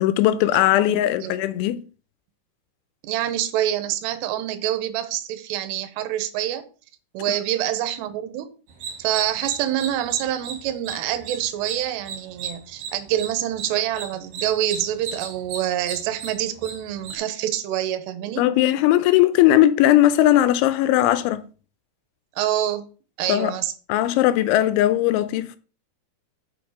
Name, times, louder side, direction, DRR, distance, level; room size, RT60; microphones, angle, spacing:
voice 1, 0.0-1.8 18.4-21.4 23.3-23.5 23.9-25.6, left 13 dB, 85° left, 2.9 m, -18 dB
voice 2, 0.5-0.9 1.2-1.3 3.0-6.7 7.1-8.5 9.0-18.4 22.4-22.8 23.2-23.7, right 12 dB, 75° right, 2.7 m, -26 dB
sound 1, 8.7-17.2, right 5 dB, 60° right, 2.6 m, -36 dB
7.1 x 5.8 x 4.8 m
omnidirectional pair, 5.5 m